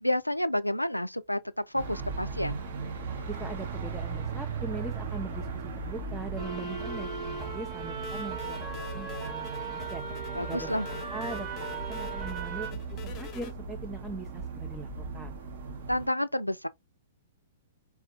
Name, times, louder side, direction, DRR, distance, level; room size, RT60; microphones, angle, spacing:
voice 1, 0.0-2.6 10.3-10.9 15.9-16.7, left 1 dB, 90° left, 0.3 m, -30 dB
sound 1, 1.7-16.1, right 4 dB, 55° right, 0.9 m, -38 dB
voice 2, 3.3-10.0 10.4-15.4, right 3 dB, 10° right, 0.5 m, -41 dB
sound 2, 6.4-12.7, right 5 dB, 25° right, 1.0 m, -38 dB
sound 3, 8.0-13.5, left 8 dB, 25° left, 0.9 m, -46 dB
4.2 x 2.3 x 2.5 m
figure-of-eight pair, 110°, 0 cm